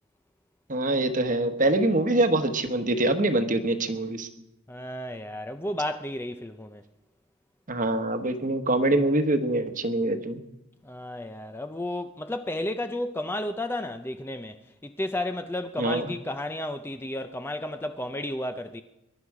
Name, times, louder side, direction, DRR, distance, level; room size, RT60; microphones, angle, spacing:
voice 1, 0.7-4.3 7.7-10.4 15.8-16.1, right 2 dB, 40° right, 1.2 m, -24 dB
voice 2, 4.7-6.8 10.8-18.8, left 1 dB, 10° left, 0.4 m, -32 dB
22.0 x 11.5 x 4.8 m
head